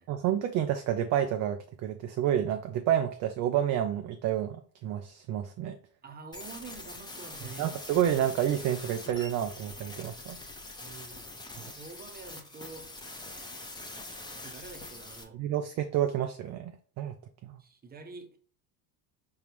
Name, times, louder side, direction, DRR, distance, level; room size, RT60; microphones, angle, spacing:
voice 1, 0.1-5.8 7.6-10.4 15.3-16.7 17.0-17.1 17.4-17.6, right 10 dB, 40° right, 6 dB, 0.4 m, -29 dB
voice 2, 6.0-7.8 10.8-11.4 11.7-12.9 14.3-15.4 17.6-18.4, right 3 dB, 20° right, 6 dB, 0.8 m, -47 dB
sound 1, 6.3-15.2, left 2 dB, 10° left, 0.8 m, -44 dB
5.3 x 2.3 x 3.0 m, 0.43 s
hypercardioid pair, 85°, 49 cm